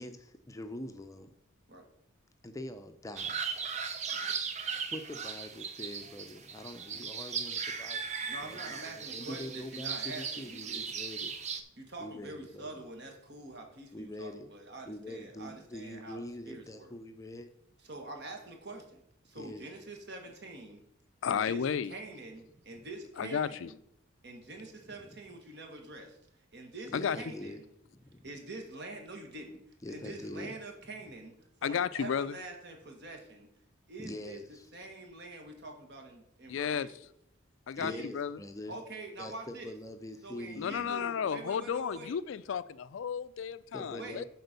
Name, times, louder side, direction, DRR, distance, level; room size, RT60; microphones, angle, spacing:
voice 1, 0.0-1.3 2.4-3.4 4.8-8.1 8.4-11.3 12.0-12.8 13.9-14.5 14.8-17.5 19.3-19.7 24.9-25.2 26.9-27.6 27.9-28.3 29.8-30.6 34.0-34.7 37.8-38.8 39.2-40.9 43.7-44.2, left 1 dB, 15° left, 7 dB, 0.5 m, -44 dB
sound 1, 3.2-11.6, right 6 dB, 35° right, 0.6 m, -37 dB
voice 2, 8.2-10.9 11.8-16.9 17.8-20.8 21.3-23.7 24.2-26.2 26.5-27.7 28.2-29.6 29.9-33.5 33.9-34.4 34.7-36.9 37.7-38.1 38.7-39.7 40.2-42.2 43.9-44.2, right 2 dB, 55° right, 3 dB, 1.6 m, -45 dB
voice 3, 21.2-21.9 23.2-23.7 26.9-27.2 31.6-32.4 36.5-36.9 37.7-38.4 40.6-44.2, left 7 dB, 70° left, 16 dB, 0.4 m, -33 dB
8.0 x 4.4 x 6.7 m, 0.76 s
head